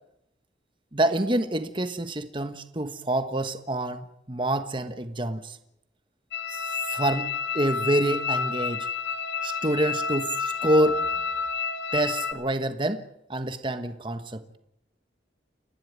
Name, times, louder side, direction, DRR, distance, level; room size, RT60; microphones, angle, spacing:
voice 1, 0.9-5.6 6.5-8.9 9.4-11.0 11.9-13.0 13.3-14.6, right 1 dB, 30° right, 1.3 m, -27 dB
sound 1, 6.3-12.3, left 6 dB, 75° left, 2.6 m, -30 dB
30.0 x 11.5 x 9.5 m
head